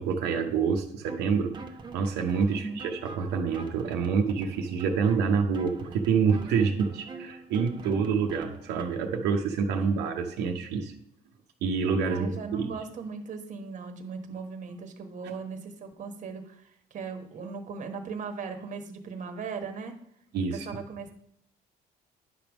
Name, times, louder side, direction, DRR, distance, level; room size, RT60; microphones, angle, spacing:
voice 1, 0.0-1.5 1.9-10.9 11.6-12.7 20.3-20.7, right 5 dB, 80° right, 2 dB, 0.8 m, -27 dB
sound 1, 1.0-9.0, right 3 dB, 30° right, 0.9 m, -45 dB
voice 2, 2.5-2.8 8.0-8.2 9.8-10.0 12.0-20.0 20.5-21.1, right 5 dB, 45° right, 6 dB, 1.2 m, -38 dB
9.7 x 3.4 x 6.1 m, 0.70 s
cardioid pair, 110°, 17 cm